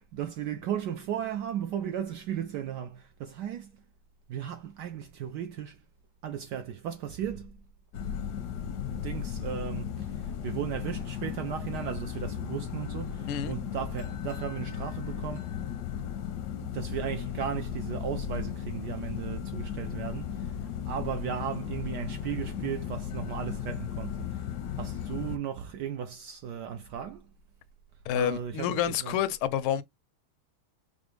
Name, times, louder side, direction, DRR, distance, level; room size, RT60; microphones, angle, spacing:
voice 1, 0.0-3.7 4.3-5.8 6.2-7.6 8.9-15.6 16.6-20.5 20.9-24.5 24.7-27.2 28.1-29.2, right 9 dB, 75° right, 0.9 m, -36 dB
sound 1, 7.9-25.4, left 8 dB, 70° left, 1.0 m, -35 dB
voice 2, 28.1-29.8, left 10 dB, 85° left, 1.4 m, -28 dB
4.9 x 2.1 x 3.1 m
omnidirectional pair, 2.2 m